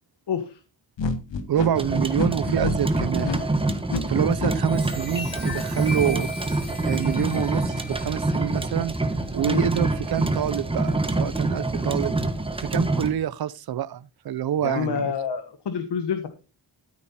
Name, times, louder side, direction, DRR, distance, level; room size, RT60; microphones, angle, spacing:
voice 1, 0.3-0.6 9.4-9.7 14.6-16.3, left 7 dB, 70° left, 1.4 m, -28 dB
sound 1, 1.0-4.5, left 4 dB, 90° left, 1.6 m, -28 dB
voice 2, 1.5-3.4 4.1-6.3 6.8-8.9 9.3-12.1 12.6-15.1, right 10 dB, 60° right, 0.6 m, -27 dB
sound 2, 1.7-13.1, right 2 dB, 10° right, 1.3 m, -26 dB
Chime, 4.4-10.3 10.8-11.1, left 3 dB, 45° left, 7.3 m, -40 dB
13.5 x 7.8 x 4.2 m
wide cardioid pair, 165°, 43 cm